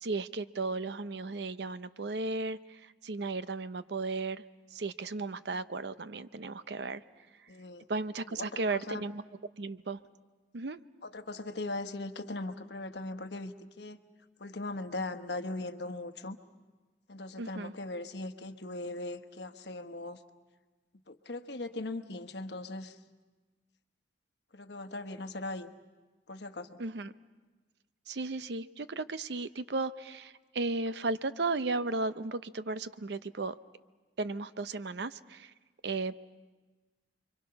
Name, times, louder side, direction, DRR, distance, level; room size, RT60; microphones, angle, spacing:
voice 1, 0.0-4.4 4.7-7.0 7.4-7.5 7.9-9.2 9.6-10.0 10.5-10.8 17.4-17.7 26.8-27.1 28.1-33.5 34.2-35.5 35.8-36.1, right 3 dB, 70° right, 13 dB, 0.6 m, -35 dB
voice 2, 7.5-7.8 8.4-9.0 11.0-14.0 14.4-16.4 17.1-20.2 21.1-23.0 24.5-25.7 26.3-26.8, left 2 dB, 70° left, 8 dB, 1.1 m, -39 dB
29.5 x 24.0 x 5.7 m, 1.3 s
head